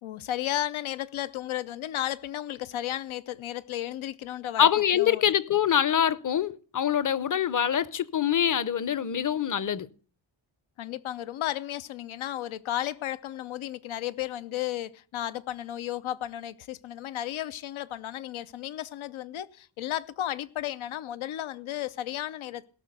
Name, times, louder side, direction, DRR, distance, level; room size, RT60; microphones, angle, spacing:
voice 1, 0.0-4.7 4.9-5.3 10.8-22.7, left 12 dB, 85° left, 0.7 m, -34 dB
voice 2, 4.6-9.9, left 9 dB, 40° left, 0.7 m, -24 dB
17.5 x 6.2 x 6.6 m
cardioid pair, 80°, 47 cm